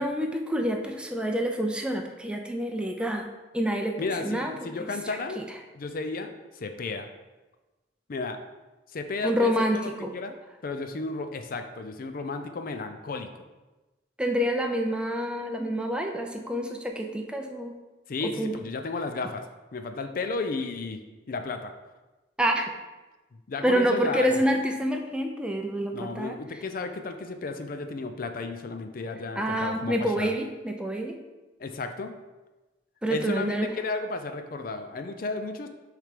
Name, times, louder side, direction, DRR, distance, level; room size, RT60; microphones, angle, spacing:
voice 1, 0.0-3.3 3.5-4.5 4.8-4.9 5.4-5.5 9.2-10.1 14.2-17.7 18.4-18.5 22.4-22.7 23.6-26.4 29.4-31.2 33.0-33.7, equal, 5° right, 3 dB, 0.5 m, -27 dB
voice 2, 4.0-5.5 5.7-7.1 8.1-8.4 8.9-10.3 10.6-13.4 18.1-21.0 21.3-21.7 23.3-24.4 25.9-30.3 31.6-32.1 33.1-35.7, left 3 dB, 50° left, 7 dB, 0.4 m, -33 dB
6.4 x 3.3 x 5.0 m, 1.1 s
head